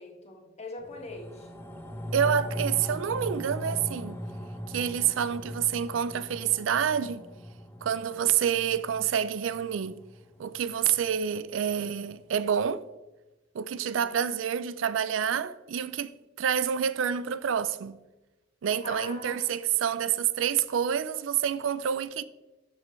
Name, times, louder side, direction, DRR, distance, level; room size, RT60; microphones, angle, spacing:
voice 1, 0.0-1.5 14.0-14.1 18.8-19.4, left 2 dB, 35° left, 1.7 m, -41 dB
sound 1, 0.8-11.4 11.7-11.8, equal, 10° left, 0.9 m, -39 dB
voice 2, 2.1-4.2 4.7-7.2 7.8-10.0 10.4-12.8 13.5-16.1 16.4-18.0 18.6-22.2, right 8 dB, 80° right, 0.4 m, -28 dB
13.0 x 5.2 x 3.1 m
head